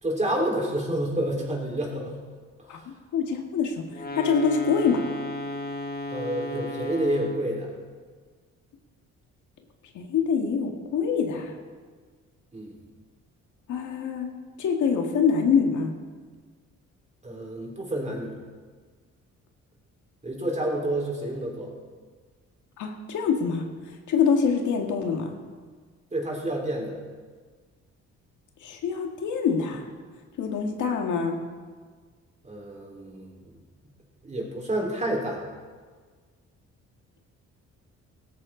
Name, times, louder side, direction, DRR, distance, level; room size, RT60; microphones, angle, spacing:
voice 1, 0.0-2.1 6.1-7.7 12.5-12.7 17.2-18.3 20.2-21.7 26.1-27.0 32.4-33.3 34.2-35.4, right 1 dB, 25° right, -1 dB, 4.1 m, -29 dB
voice 2, 3.1-3.9 4.2-5.1 9.9-11.6 13.7-15.9 22.8-23.7 24.1-25.4 28.6-29.8 30.4-31.4, left 6 dB, 75° left, 3 dB, 1.9 m, -25 dB
sound 1, 3.9-7.6, left 1 dB, 30° left, 1.5 m, -34 dB
17.0 x 14.0 x 3.9 m, 1.5 s
cardioid pair, 90°, 30 cm